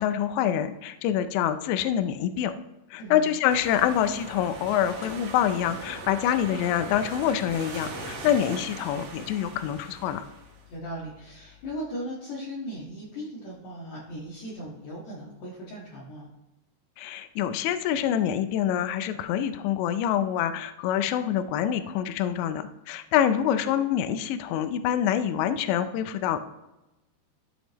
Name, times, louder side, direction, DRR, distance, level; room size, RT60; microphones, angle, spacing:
voice 1, 0.0-2.5 2.9-10.2 17.0-26.4, left 10 dB, 80° left, 11 dB, 2.7 m, -26 dB
sound 1, 3.5-11.7, right 2 dB, 65° right, 1.4 m, -40 dB
voice 2, 10.7-16.3, equal, 55° left, -7 dB, 2.1 m, -38 dB
15.0 x 5.3 x 3.0 m, 0.96 s
omnidirectional pair, 5.3 m